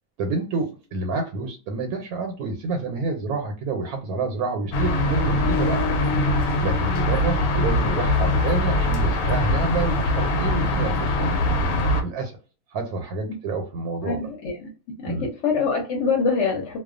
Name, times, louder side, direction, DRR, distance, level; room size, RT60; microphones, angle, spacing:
voice 1, 0.2-5.9 6.6-11.3 12.0-12.4 12.7-14.2 15.0-15.3, right 3 dB, 85° right, 4 dB, 1.1 m, -28 dB
sound 1, 4.7-12.0, left 1 dB, 90° left, 1.1 m, -22 dB
voice 2, 14.0-14.7 15.0-16.8, left 5 dB, 60° left, 1 dB, 0.8 m, -24 dB
2.3 x 2.2 x 2.4 m, 0.35 s
omnidirectional pair, 1.6 m